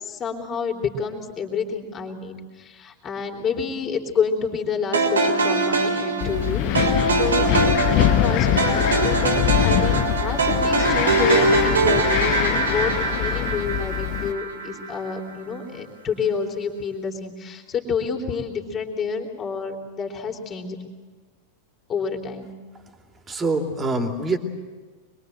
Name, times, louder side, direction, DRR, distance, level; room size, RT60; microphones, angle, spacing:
voice 1, 0.0-20.8 21.9-22.5, left 5 dB, 25° left, 3 dB, 3.5 m, -29 dB
sound 1, 4.9-15.2, right 3 dB, 70° right, 3.6 m, -22 dB
Wind, 6.2-14.3, left 14 dB, 40° left, 1.0 m, -23 dB
voice 2, 23.3-24.4, right 2 dB, 20° right, 5 dB, 2.9 m, -24 dB
26.0 x 22.5 x 7.8 m, 1.4 s
figure-of-eight pair, 90°, 0 cm